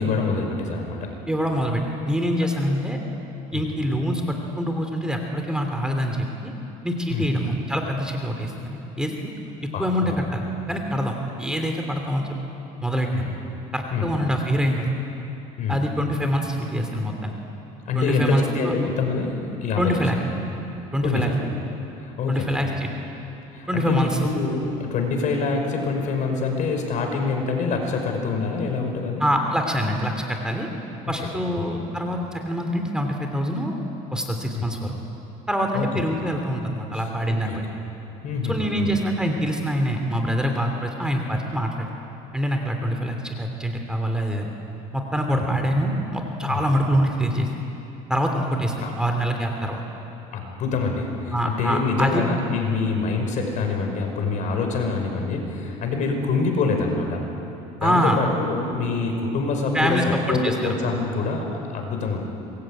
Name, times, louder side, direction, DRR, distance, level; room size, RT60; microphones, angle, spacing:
voice 1, 0.0-1.1 3.5-3.7 7.1-7.3 9.7-10.2 13.1-13.3 13.9-14.1 15.6-15.8 17.9-20.0 21.0-21.4 22.0-22.9 23.5-29.3 31.0-31.1 31.6-31.7 34.5-34.7 35.7-35.9 37.3-37.6 38.2-38.9 45.4-45.5 46.5-46.7 48.8-48.9 50.3-57.2 57.8-62.2, left 4 dB, 55° left, 3 dB, 5.4 m, -26 dB
voice 2, 1.3-3.0 3.5-6.5 6.8-9.1 9.8-12.4 12.8-13.3 13.7-14.9 15.7-17.3 17.9-18.7 19.8-20.4 20.9-21.3 22.3-22.9 23.7-24.2 29.2-30.7 31.1-33.7 34.1-34.9 35.5-37.6 38.5-41.9 42.3-44.5 44.9-47.5 48.1-49.8 51.3-52.2 57.8-58.2 59.7-60.7, equal, 5° right, 3 dB, 3.0 m, -25 dB
26.5 x 21.5 x 9.1 m, 2.9 s
cardioid pair, 120°, 16 cm